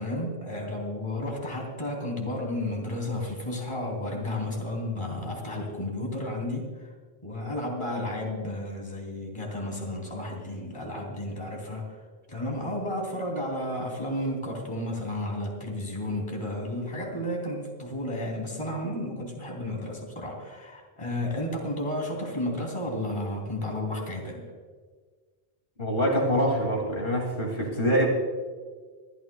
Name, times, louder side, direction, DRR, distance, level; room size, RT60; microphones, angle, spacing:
voice 1, 0.0-6.9 7.2-12.0 12.3-24.5, left 1 dB, 25° left, -1 dB, 3.2 m, -32 dB
voice 2, 25.8-28.1, equal, 60° left, -1 dB, 2.8 m, -25 dB
25.5 x 13.5 x 2.3 m, 1.5 s
omnidirectional pair, 1.1 m